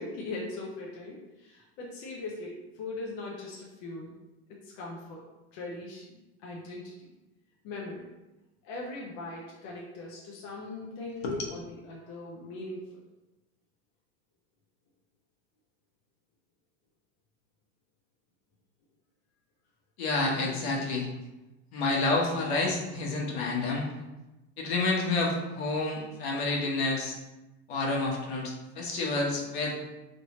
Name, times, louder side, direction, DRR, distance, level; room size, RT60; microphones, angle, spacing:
voice 1, 0.0-4.2 4.7-5.3 5.5-6.0 6.4-7.1 7.6-8.1 8.6-12.9, left 2 dB, 35° left, -3 dB, 0.5 m, -40 dB
voice 2, 20.0-21.1 21.7-23.9 24.6-27.2 27.7-29.7, left 3 dB, 65° left, -2 dB, 1.2 m, -29 dB
4.1 x 3.2 x 3.0 m, 1.0 s
supercardioid pair, 175°, 34 cm